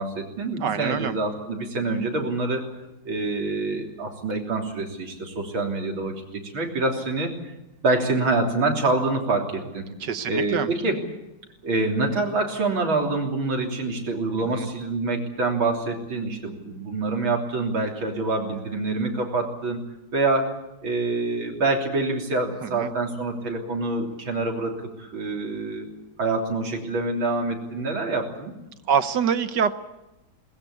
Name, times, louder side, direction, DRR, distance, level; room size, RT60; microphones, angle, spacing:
voice 1, 0.0-2.7 3.1-7.3 7.8-9.8 10.3-11.0 11.6-19.8 20.1-20.5 20.8-25.9 26.2-28.5, right 3 dB, 85° right, 1 dB, 4.1 m, -26 dB
voice 2, 0.6-1.2 10.0-10.7 14.4-14.7 22.6-22.9 28.9-29.8, right 7 dB, 65° right, 11 dB, 1.6 m, -25 dB
22.0 x 20.0 x 8.4 m, 0.94 s
omnidirectional pair, 2.1 m